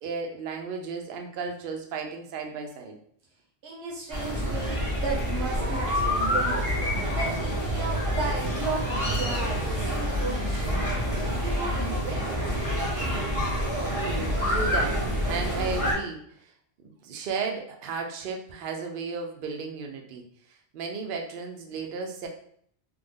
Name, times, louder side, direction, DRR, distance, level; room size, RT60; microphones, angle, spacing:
voice 1, 0.0-3.0 14.4-16.5 16.8-20.2 20.5-22.3, right 5 dB, 60° right, 3 dB, 0.7 m, -34 dB
voice 2, 3.6-6.6 7.1-12.6, right 4 dB, 85° right, -2 dB, 0.9 m, -35 dB
sound 1, 4.1-15.9, equal, 30° right, 1.1 m, -27 dB
3.3 x 2.0 x 3.5 m, 0.63 s
omnidirectional pair, 1.1 m